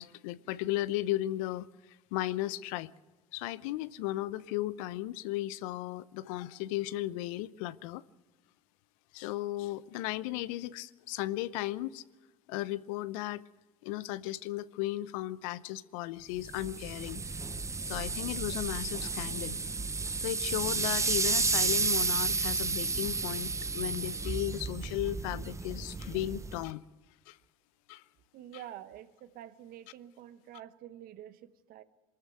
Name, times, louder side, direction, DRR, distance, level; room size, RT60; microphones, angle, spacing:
voice 1, 0.0-1.7 2.1-2.9 3.3-8.0 9.1-12.0 12.5-13.4 13.8-17.2 17.9-19.6 20.2-26.8 27.3-27.4 27.9-28.0, left 15 dB, 70° left, 0.7 m, -35 dB
sound 1, 16.4-26.7, right 4 dB, 15° right, 0.9 m, -32 dB
voice 2, 28.3-31.8, right 11 dB, 55° right, 1.3 m, -48 dB
23.0 x 13.5 x 9.3 m
hypercardioid pair, 75°, 18 cm